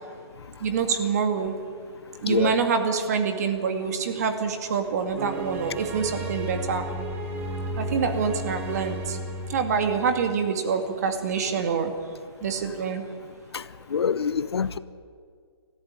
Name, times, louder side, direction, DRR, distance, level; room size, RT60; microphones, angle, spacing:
voice 1, 0.6-1.6 2.2-6.9 7.8-9.2 9.5-11.9 12.4-13.1, right 6 dB, 40° right, 6 dB, 2.3 m, -26 dB
voice 2, 2.3-2.6 13.5-13.6 13.9-14.8, left 6 dB, 70° left, 15 dB, 1.0 m, -25 dB
sound 1, 5.2-10.3, equal, 10° right, 1.6 m, -33 dB
23.0 x 14.5 x 9.9 m, 2.1 s
hypercardioid pair, 170°, 14 cm